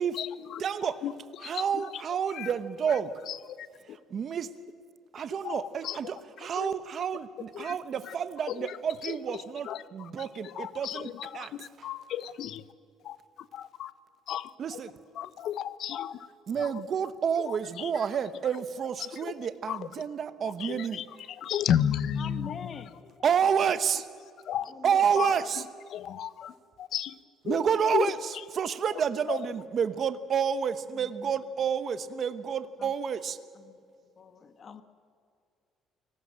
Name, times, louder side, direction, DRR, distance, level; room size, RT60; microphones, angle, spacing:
voice 1, 0.0-2.0 2.3-2.5 2.9-3.0 3.3-4.0 5.1-6.0 6.4-6.7 7.5-7.8 8.0-8.2 8.4-12.6 13.0-13.9 14.3-14.8 15.1-16.3 16.6-16.9 17.4-18.1 18.5-18.6 19.0-19.9 20.4-22.8 23.5-23.6 24.4-24.7 25.2-27.2 27.4-28.4 28.9-29.0 29.3-29.4, left 10 dB, 55° left, 16 dB, 0.9 m, -35 dB
voice 2, 0.6-1.0 1.5-3.2 4.1-4.5 5.1-11.1 11.3-11.5 14.6-14.9 16.5-21.0 23.2-24.0 24.8-25.6 27.5-28.1 28.6-33.4, right 7 dB, 40° right, 12 dB, 1.1 m, -29 dB
voice 3, 22.2-23.1 24.6-25.5 30.9-31.3 32.8-32.9 33.5-33.8 34.2-34.8, left 6 dB, 35° left, 10 dB, 1.4 m, -44 dB
29.5 x 19.0 x 7.6 m, 2.4 s
cardioid pair, 155°, 0 cm